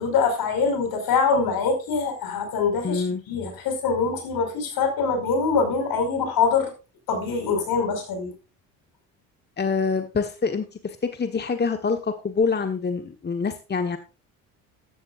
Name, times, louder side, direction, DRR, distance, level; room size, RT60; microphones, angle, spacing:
voice 1, 0.0-6.7 7.1-8.3, left 5 dB, 65° left, 5 dB, 5.3 m, -24 dB
voice 2, 2.8-3.2 9.6-14.0, left 5 dB, 25° left, 7 dB, 1.3 m, -26 dB
14.0 x 12.5 x 2.5 m, 0.30 s
hypercardioid pair, 65°, 39 cm